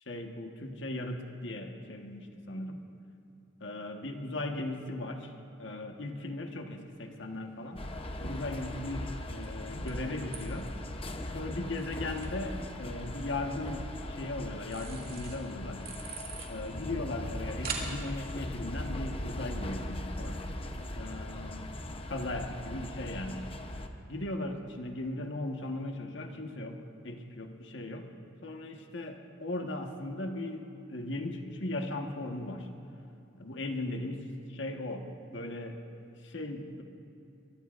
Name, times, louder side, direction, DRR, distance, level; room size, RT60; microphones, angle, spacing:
voice 1, 0.1-2.8 3.6-5.3 5.6-7.9 8.2-10.7 11.3-15.8 16.5-20.4 20.9-21.7 22.1-23.5 24.1-26.8 27.0-28.0 28.4-32.7 33.4-35.0 35.3-35.8 36.2-36.8, left 2 dB, 65° left, 3 dB, 1.4 m, -38 dB
sound 1, 6.8-20.9, right 5 dB, 50° right, 2.4 m, -48 dB
sound 2, 7.8-23.9, left 1 dB, 30° left, 0.8 m, -39 dB
23.5 x 22.0 x 2.6 m, 2.8 s
head